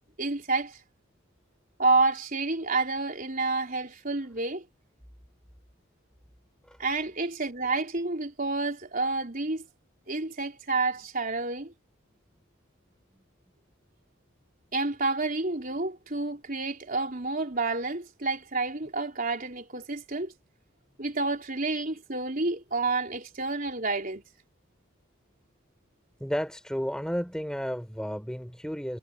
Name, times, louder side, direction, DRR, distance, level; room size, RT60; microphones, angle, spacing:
voice 1, 0.2-0.8 1.8-4.6 6.8-9.6 10.1-11.7 14.7-20.3 21.0-24.2, right 3 dB, 40° right, 4.1 m, -29 dB
voice 2, 26.2-29.0, equal, 5° left, 3.4 m, -32 dB
head